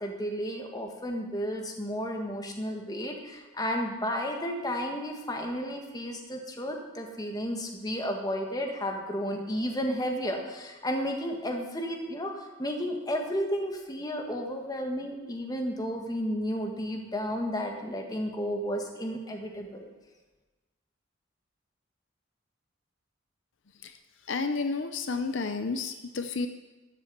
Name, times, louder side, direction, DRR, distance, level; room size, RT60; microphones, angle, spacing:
voice 1, 0.0-19.9, equal, 20° left, 3 dB, 1.6 m, -32 dB
voice 2, 24.3-26.5, left 4 dB, 65° left, 9 dB, 0.6 m, -31 dB
13.0 x 7.6 x 8.0 m, 1.2 s
head